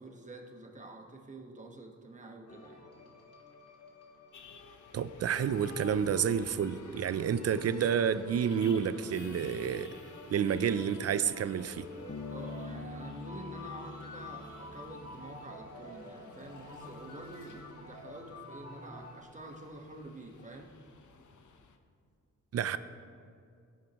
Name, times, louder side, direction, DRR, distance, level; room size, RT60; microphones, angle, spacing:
voice 1, 0.0-2.9 12.3-20.7, right 2 dB, 25° right, 2 dB, 1.2 m, -48 dB
sound 1, 2.5-19.2, left 2 dB, 55° left, 1.9 m, -49 dB
sound 2, 4.3-21.8, left 5 dB, 75° left, 0.9 m, -54 dB
voice 2, 4.9-9.9 10.3-11.9 22.5-22.8, right 8 dB, 55° right, 13 dB, 0.5 m, -29 dB
Bass guitar, 12.1-15.6, left 3 dB, 35° left, 0.8 m, -45 dB
18.0 x 11.0 x 3.0 m, 2.4 s
wide cardioid pair, 140°, 30 cm